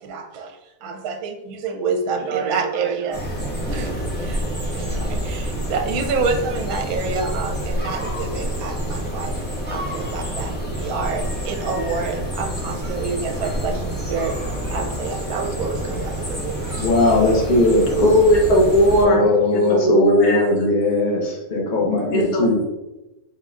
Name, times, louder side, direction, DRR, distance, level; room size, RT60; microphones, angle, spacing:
voice 1, 0.0-3.2 3.7-4.4 4.7-9.4 9.7-14.4 14.6-16.9, right 4 dB, 75° right, 4 dB, 1.1 m, -28 dB
sound 1, 3.1-19.0, equal, 10° left, 0.9 m, -27 dB
voice 2, 16.8-17.9 19.0-22.6, left 2 dB, 35° left, -3 dB, 1.0 m, -19 dB
voice 3, 18.0-19.2 19.5-20.7 22.1-22.7, equal, 75° left, -1 dB, 1.5 m, -17 dB
4.5 x 3.8 x 2.4 m, 0.98 s
omnidirectional pair, 1.6 m